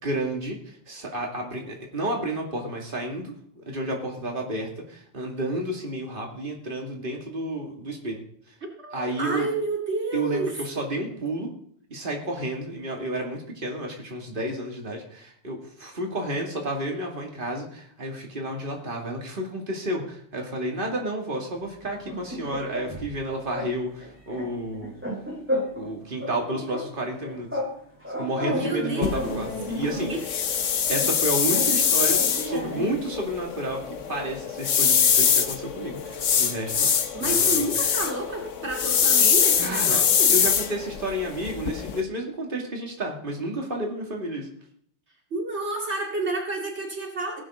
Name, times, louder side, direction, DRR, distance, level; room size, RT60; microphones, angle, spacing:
voice 1, 0.0-8.2 8.9-9.5 10.1-11.5 11.9-25.0 25.7-27.5 28.2-30.1 30.9-37.7 39.6-40.0 40.3-44.5, right 1 dB, 45° right, 1 dB, 2.6 m, -31 dB
voice 2, 8.8-10.7 25.8-25.9 28.5-29.5 30.1-30.2 37.1-40.3 45.3-47.4, right 2 dB, 65° right, 1 dB, 2.6 m, -30 dB
sound 1, 21.8-23.2 23.5-23.7 24.0-25.9 26.2-27.8 28.0-30.2 31.0-33.0, left 1 dB, 10° right, 6.6 m, -33 dB
sound 2, 29.0-42.0, left 7 dB, 85° left, 1.4 m, -23 dB
18.5 x 11.5 x 3.8 m, 0.64 s
omnidirectional pair, 1.2 m